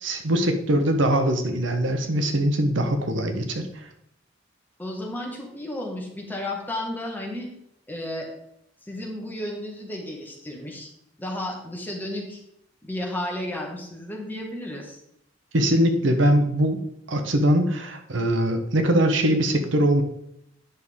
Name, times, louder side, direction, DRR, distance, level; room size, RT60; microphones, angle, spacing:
voice 1, 0.0-3.6 15.5-16.8 17.1-20.0, right 1 dB, 75° right, 6 dB, 1.1 m, -22 dB
voice 2, 4.8-7.5 7.9-8.3 8.9-10.9 11.2-12.4 12.8-15.0, left 1 dB, 10° left, -1 dB, 1.8 m, -33 dB
9.7 x 6.4 x 3.7 m, 0.78 s
head